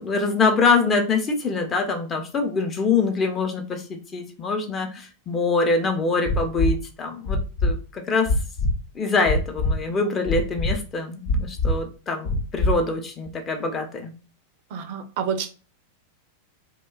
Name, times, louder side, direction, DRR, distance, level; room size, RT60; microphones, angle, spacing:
voice 1, 0.0-8.3 8.9-14.1, left 4 dB, 25° left, 0.5 m, -24 dB
sound 1, 6.2-6.7 7.2-7.7 8.2-8.7 9.2-9.7 10.2-10.7 11.2-11.7 12.2-12.7 13.3-13.4, left 1 dB, 60° left, 0.7 m, -22 dB
voice 2, 14.7-15.5, right 7 dB, 50° right, 0.4 m, -28 dB
2.6 x 2.2 x 2.3 m
figure-of-eight pair, 90°, 0 cm